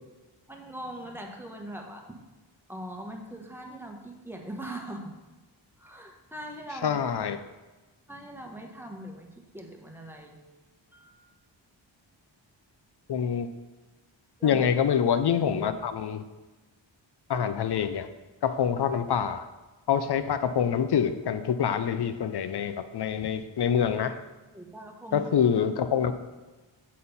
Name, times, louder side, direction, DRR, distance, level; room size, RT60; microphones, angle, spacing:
voice 1, 0.5-2.2 2.7-5.1 5.8-7.0 8.1-10.4 10.9-11.3 14.4-14.7 24.5-25.3, right 1 dB, 5° right, 1 dB, 1.1 m, -41 dB
voice 2, 6.8-7.4 13.1-13.5 14.4-16.2 17.3-18.1 18.4-19.5 19.9-24.2 25.1-26.1, left 8 dB, 55° left, 11 dB, 0.6 m, -26 dB
7.5 x 4.3 x 5.5 m, 1.2 s
wide cardioid pair, 75°, 47 cm